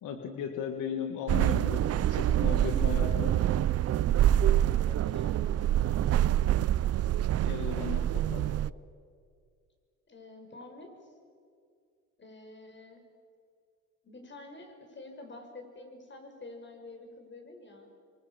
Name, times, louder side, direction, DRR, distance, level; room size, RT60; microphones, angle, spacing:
voice 1, 0.0-3.4 7.4-8.5, left 7 dB, 90° left, 4 dB, 2.0 m, -36 dB
sound 1, 1.3-8.7, right 12 dB, 55° right, 0.5 m, -26 dB
voice 2, 4.1-6.7 10.1-11.1 12.2-13.1 14.0-17.9, left 2 dB, 40° left, 4 dB, 5.4 m, -49 dB
26.0 x 25.0 x 7.2 m, 2.2 s
cardioid pair, 90°, 30 cm